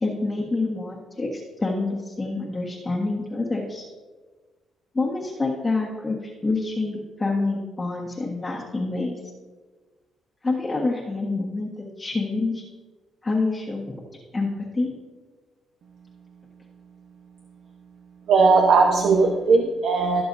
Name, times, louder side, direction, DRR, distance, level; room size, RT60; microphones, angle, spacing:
voice 1, 0.0-3.9 4.9-9.2 10.4-12.6 13.2-13.9 14.3-14.9, left 3 dB, 20° left, -5 dB, 1.5 m, -27 dB
voice 2, 18.3-20.2, right 4 dB, 70° right, 2 dB, 1.0 m, -18 dB
17.0 x 6.9 x 2.7 m, 1.4 s
cardioid pair, 90°, 0 cm